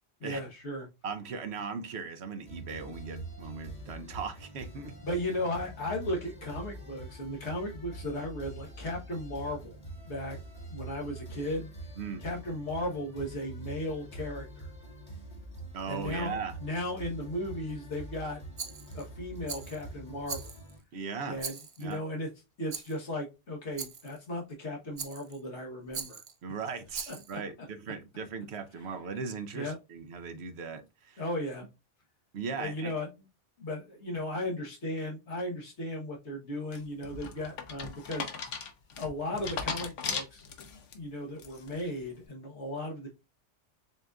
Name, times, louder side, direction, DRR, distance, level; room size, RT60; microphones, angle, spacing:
voice 1, 0.2-0.9 5.0-9.8 10.0-10.4 10.7-11.7 12.2-14.7 15.9-18.4 18.9-20.5 21.3-22.3 22.6-26.2 27.1-27.4 29.5-29.8 31.2-31.7 32.6-33.1 33.6-38.3 39.0-40.5 40.9-43.1, left 1 dB, 70° left, 1.4 m, -36 dB
voice 2, 1.0-4.9 12.0-12.2 15.7-16.5 20.9-21.4 21.8-22.0 26.4-31.2 32.3-32.9, right 5 dB, 65° right, 0.9 m, -38 dB
sound 1, 2.5-20.8, right 2 dB, 35° left, 1.5 m, -45 dB
Rattle, 18.6-19.1 19.5-19.8 20.3-20.8 21.4-21.9 22.7-23.0 23.8-24.2 25.0-25.4 25.9-26.3 26.9-27.4, right 5 dB, 45° right, 0.4 m, -40 dB
sound 2, 36.7-40.9 41.4-41.8, left 5 dB, 85° left, 1.1 m, -37 dB
6.7 x 2.5 x 2.3 m
omnidirectional pair, 1.2 m